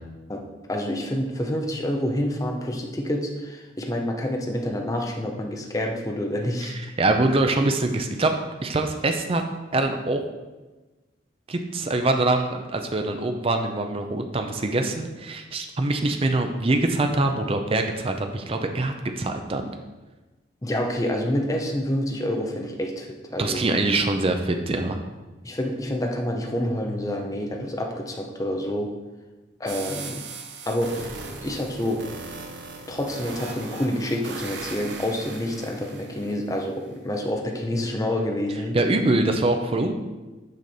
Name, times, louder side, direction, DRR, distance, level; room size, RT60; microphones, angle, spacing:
voice 1, 0.7-6.8 20.6-23.6 25.4-28.9 29.6-30.2 30.7-32.0 32.9-38.8, left 1 dB, 20° left, 2 dB, 0.6 m, -28 dB
voice 2, 7.0-8.3 8.6-9.4 9.7-10.2 11.5-19.7 23.4-25.0 38.7-39.9, right 2 dB, 30° right, 5 dB, 0.5 m, -24 dB
sound 1, 29.7-36.6, right 3 dB, 65° right, 0.9 m, -38 dB
6.4 x 5.1 x 4.1 m, 1.2 s
head